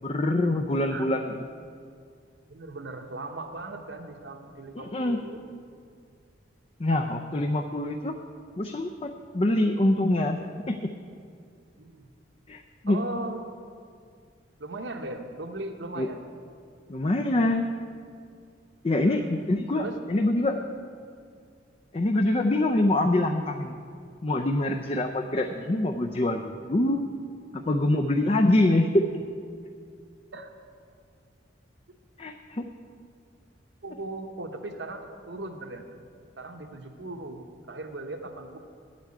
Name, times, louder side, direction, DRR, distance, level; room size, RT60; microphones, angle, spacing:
voice 1, 0.0-1.3 4.7-5.2 6.8-8.1 8.6-10.4 10.7-10.9 12.5-13.0 16.0-16.1 16.9-17.7 18.8-20.6 21.9-23.7 24.2-27.1 27.5-29.0 32.2-32.7, left 1 dB, 30° left, 4 dB, 0.5 m, -25 dB
voice 2, 0.7-1.1 2.5-5.4 11.8-12.1 12.9-13.4 14.6-16.2 19.0-20.0 28.7-28.8 30.3-30.5 33.8-35.8 36.4-38.6, right 2 dB, 75° right, 5 dB, 1.1 m, -38 dB
9.3 x 8.3 x 8.6 m, 2.2 s
head